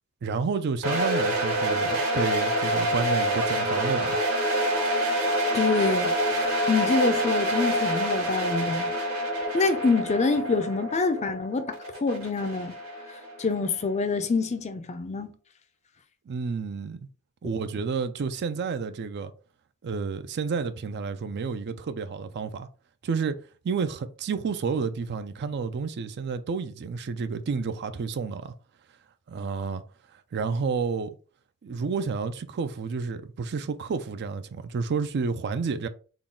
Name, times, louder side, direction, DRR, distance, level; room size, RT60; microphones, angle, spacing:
voice 1, 0.2-4.2 16.3-17.1 17.4-19.3 19.8-22.7 23.0-23.4 23.6-28.5 29.3-29.8 30.1-31.2 31.6-35.9, right 5 dB, 50° right, 0.4 m, -30 dB
sound 1, 0.8-13.7, right 1 dB, 70° right, 1.7 m, -27 dB
voice 2, 5.5-8.9 9.5-11.8 12.0-12.8 13.4-15.3, left 4 dB, 30° left, 0.4 m, -26 dB
3.8 x 2.3 x 3.6 m
head